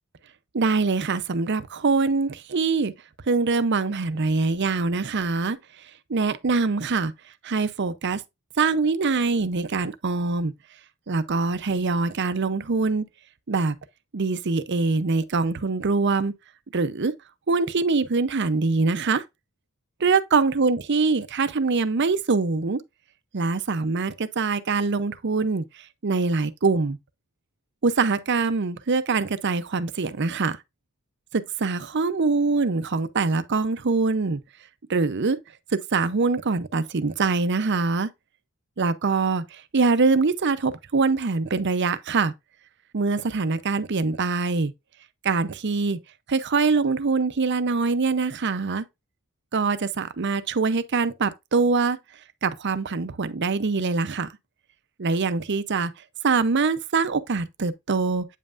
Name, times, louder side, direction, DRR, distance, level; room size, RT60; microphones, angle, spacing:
voice 1, 0.5-2.9 3.3-5.6 6.1-7.1 7.4-8.2 8.6-10.5 11.1-13.0 13.5-13.8 14.1-16.3 16.7-17.1 17.5-19.2 20.0-22.8 23.3-25.6 26.0-27.0 27.8-30.6 31.3-34.4 34.9-35.4 35.9-38.1 38.8-42.3 42.9-44.7 45.2-46.0 46.3-48.8 49.5-52.0 52.4-54.3 55.0-55.9 56.2-58.3, right 4 dB, 55° right, 0.6 m, -23 dB
8.4 x 5.5 x 2.5 m
head